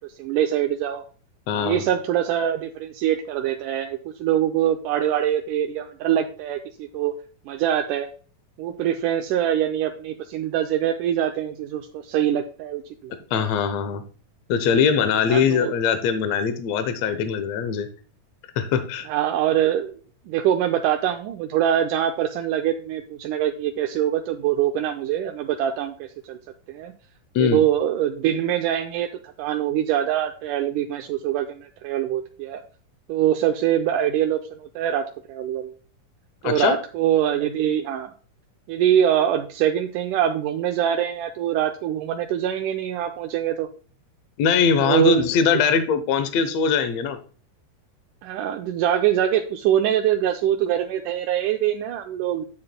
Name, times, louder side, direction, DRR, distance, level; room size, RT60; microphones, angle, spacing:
voice 1, 0.2-1.0 1.6-7.1 7.5-8.1 8.6-13.5 15.3-15.8 19.1-20.0 20.3-26.4 26.7-26.9 27.4-32.6 33.1-35.7 36.4-38.1 38.7-43.7 44.8-45.6 48.2-52.4, right 10 dB, 80° right, 4 dB, 2.0 m, -24 dB
voice 2, 1.5-1.8 13.3-14.0 14.5-17.9 18.6-19.1 27.3-27.6 36.4-36.8 44.4-47.2, left 6 dB, 75° left, 9 dB, 1.6 m, -21 dB
10.5 x 7.7 x 2.2 m, 0.40 s
omnidirectional pair, 4.0 m